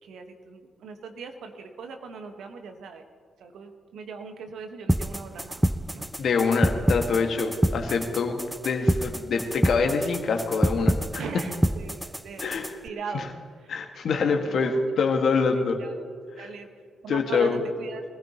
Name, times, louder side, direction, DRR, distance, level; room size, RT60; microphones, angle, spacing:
voice 1, 0.0-3.0 3.4-5.6 5.9-6.2 11.1-12.5 12.8-13.3 13.6-13.7 14.1-14.8 15.8-16.0 16.4-16.7 17.0-18.0, right 5 dB, 65° right, 6 dB, 1.4 m, -39 dB
sound 1, 4.9-12.9, equal, 5° right, 0.4 m, -27 dB
voice 2, 6.2-11.2 12.4-12.8 13.1-13.3 13.7-15.8 16.4-16.5 17.1-17.6, left 4 dB, 60° left, 3 dB, 1.8 m, -25 dB
23.0 x 16.5 x 3.0 m, 2.3 s
hypercardioid pair, 45°, 0 cm